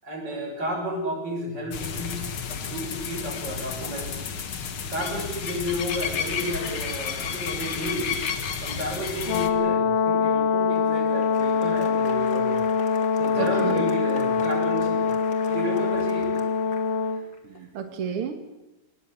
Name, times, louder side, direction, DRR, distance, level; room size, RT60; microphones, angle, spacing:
voice 1, 0.0-2.2 2.5-4.1 4.9-8.2 8.6-12.5 13.2-15.0 15.4-16.3, equal, 25° right, -1 dB, 8.1 m, -32 dB
sound 1, 1.7-9.5, left 6 dB, 90° left, 1.1 m, -31 dB
Brass instrument, 9.2-17.2, left 5 dB, 70° left, 2.2 m, -24 dB
Applause, 10.5-17.4, left 3 dB, 30° left, 2.0 m, -42 dB
voice 2, 13.4-13.9 17.4-18.3, right 7 dB, 70° right, 6 dB, 1.3 m, -31 dB
23.0 x 20.0 x 8.9 m, 0.98 s
omnidirectional pair, 4.9 m